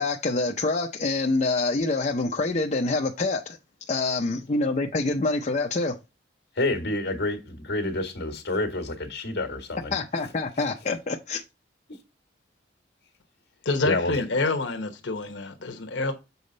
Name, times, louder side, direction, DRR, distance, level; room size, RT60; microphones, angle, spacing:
voice 1, 0.0-3.6 3.9-6.0 9.9-11.4, left 3 dB, 40° left, 0.5 m, -26 dB
voice 2, 6.5-9.9 13.8-14.1, left 2 dB, 60° left, 1.6 m, -28 dB
voice 3, 13.6-16.1, left 3 dB, 75° left, 1.0 m, -27 dB
7.0 x 4.2 x 3.9 m
head